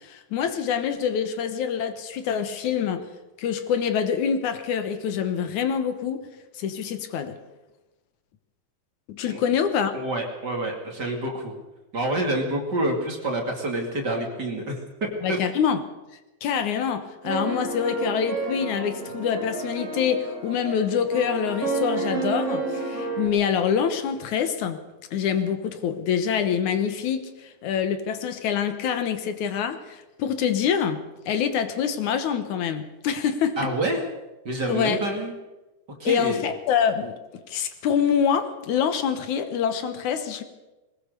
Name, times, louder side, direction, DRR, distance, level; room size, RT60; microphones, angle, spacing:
voice 1, 0.0-3.0 3.4-6.2 6.6-7.4 9.1-9.9 15.2-15.8 16.4-24.8 25.1-33.7 34.7-35.0 36.0-37.1 37.5-40.4, left 7 dB, 75° left, 9 dB, 2.6 m, -25 dB
voice 2, 9.9-11.5 11.9-15.4 33.6-34.0 34.4-35.3 36.0-36.5, right 1 dB, 35° right, 2 dB, 2.9 m, -27 dB
sound 1, 17.2-23.3, right 3 dB, 50° right, 5.3 m, -30 dB
21.0 x 19.0 x 6.7 m, 1.1 s
omnidirectional pair, 3.5 m